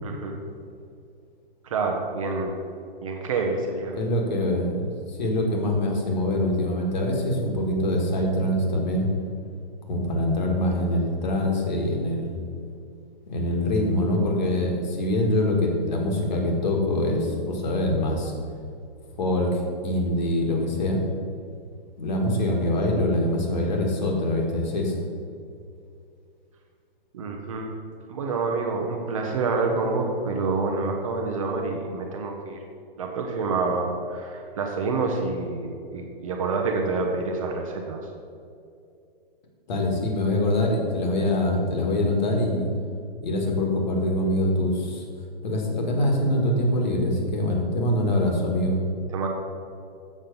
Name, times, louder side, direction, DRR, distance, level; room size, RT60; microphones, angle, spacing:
voice 1, 0.0-0.4 1.6-2.6 3.0-4.0 27.1-27.7 28.1-32.6 33.0-38.1 49.1-49.3, right 3 dB, 35° right, 2 dB, 0.8 m, -27 dB
voice 2, 3.9-9.1 9.9-12.4 13.3-18.3 19.2-21.0 22.0-25.0 39.7-42.7 43.2-45.0 45.4-48.8, left 1 dB, 50° left, 1 dB, 1.7 m, -24 dB
7.4 x 5.8 x 5.2 m, 2.5 s
hypercardioid pair, 165°, 29 cm